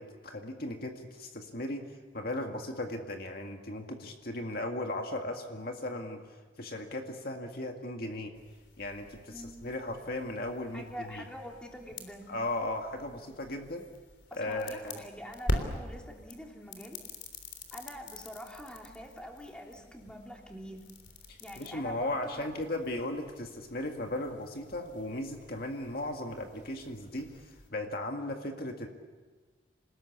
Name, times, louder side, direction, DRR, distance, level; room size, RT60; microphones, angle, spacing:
voice 1, 0.0-1.8 2.1-6.2 6.6-8.3 8.8-11.2 12.3-13.9 14.4-15.0 21.3-27.3 27.7-28.9, left 1 dB, 55° left, 3 dB, 2.0 m, -36 dB
sound 1, 8.3-27.7, left 1 dB, 75° left, 3.4 m, -44 dB
voice 2, 10.7-12.3 14.3-17.0 17.7-20.8 21.4-22.5, equal, 5° left, 0 dB, 3.1 m, -45 dB
28.0 x 19.5 x 8.4 m, 1.4 s
head